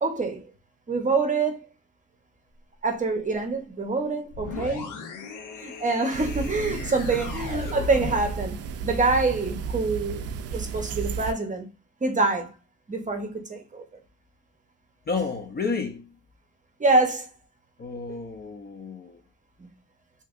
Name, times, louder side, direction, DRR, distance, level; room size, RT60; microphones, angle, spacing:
voice 1, 0.0-0.5 0.9-1.7 2.8-4.9 5.6-10.2 10.5-11.7 12.0-12.5 12.9-13.8 16.8-17.3 19.6-19.7, right 3 dB, 25° right, 0.8 m, -25 dB
sound 1, 4.3-8.5, left 5 dB, 80° left, 0.7 m, -37 dB
sound 2, 6.1-11.3, right 6 dB, 55° right, 0.4 m, -33 dB
voice 2, 15.1-16.1 17.8-19.2, left 4 dB, 35° left, 0.6 m, -31 dB
3.2 x 2.8 x 2.4 m
cardioid pair, 90°, 30 cm